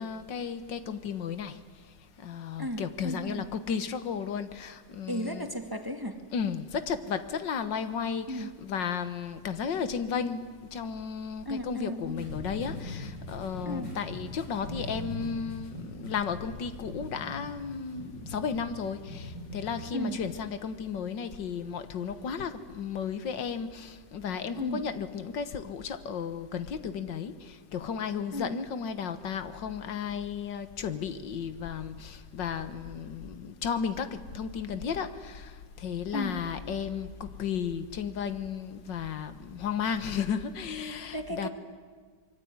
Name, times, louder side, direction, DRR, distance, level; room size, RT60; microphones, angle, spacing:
voice 1, 0.0-1.6 2.2-5.5 6.3-41.5, left 6 dB, 90° left, 11 dB, 2.0 m, -34 dB
voice 2, 2.6-3.5 5.1-6.2 8.3-8.5 11.5-12.3 13.7-13.9 19.9-20.2 24.6-24.8 28.3-28.6 36.1-36.4 41.1-41.5, equal, 10° right, 5 dB, 1.9 m, -34 dB
sound 1, 12.1-19.9, left 1 dB, 70° left, 5.6 m, -41 dB
25.5 x 23.5 x 9.6 m, 1.5 s
omnidirectional pair, 1.9 m